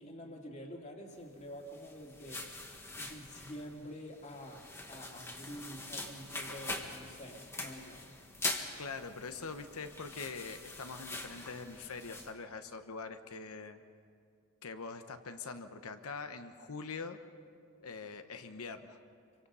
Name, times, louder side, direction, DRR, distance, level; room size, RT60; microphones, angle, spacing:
voice 1, 0.0-2.4 3.0-8.1, equal, 30° left, 1 dB, 2.4 m, -47 dB
sound 1, 1.6-12.3, left 2 dB, 10° left, 1.5 m, -43 dB
voice 2, 8.8-13.8 14.6-17.2 17.8-19.0, left 4 dB, 75° left, 8 dB, 1.0 m, -43 dB
27.0 x 24.0 x 5.6 m, 2.3 s
head